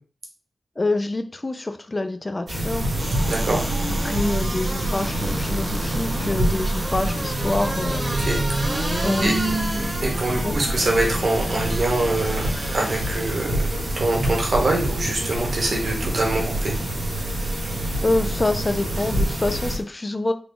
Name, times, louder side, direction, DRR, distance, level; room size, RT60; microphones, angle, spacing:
voice 1, 0.8-2.9 3.9-8.1 9.0-9.7 10.4-10.6 18.0-20.3, left 2 dB, 30° left, 8 dB, 0.4 m, -26 dB
sound 1, 2.5-19.8, right 1 dB, 80° right, 1.5 m, -26 dB
sound 2, 2.9-13.4 13.9-14.0, right 1 dB, 40° right, 0.8 m, -31 dB
voice 2, 3.3-3.6 8.2-8.4 8.9-9.3 10.0-13.7 14.0-16.7, right 2 dB, 60° right, 0 dB, 1.2 m, -24 dB
3.7 x 2.3 x 3.7 m, 0.40 s
wide cardioid pair, 90°, 0 cm